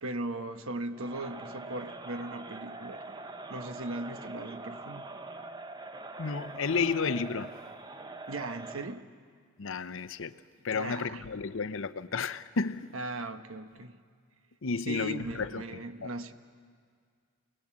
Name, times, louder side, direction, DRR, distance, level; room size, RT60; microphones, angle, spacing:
voice 1, 0.0-3.2 3.5-5.0 8.3-9.1 10.7-11.2 12.9-14.0 14.9-16.3, right 2 dB, 65° right, 1.1 m, -38 dB
Crowd, 0.9-9.0, right 3 dB, 20° right, 0.7 m, -44 dB
voice 2, 6.2-7.5 9.6-10.3 10.6-12.9 14.6-15.6 16.0-16.1, left 5 dB, 60° left, 0.7 m, -32 dB
30.0 x 19.0 x 7.5 m
head